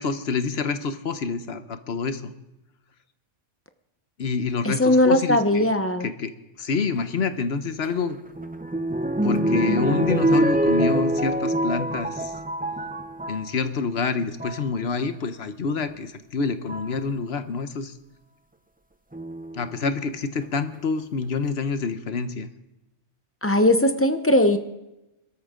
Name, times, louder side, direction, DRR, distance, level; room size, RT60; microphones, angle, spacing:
voice 1, 0.0-2.3 4.2-5.7 6.0-8.2 9.2-12.3 13.3-17.9 19.5-22.5, left 5 dB, 60° left, 10 dB, 1.1 m, -27 dB
voice 2, 4.6-6.1 23.4-24.6, left 1 dB, 15° left, 8 dB, 0.7 m, -19 dB
sound 1, 7.8-13.5 14.2-14.6 15.9-16.0 16.7-17.0 19.1-19.8 20.4-20.5 20.7-20.8, right 1 dB, 15° right, 0.3 m, -25 dB
22.5 x 13.0 x 3.7 m, 0.94 s
omnidirectional pair, 1.3 m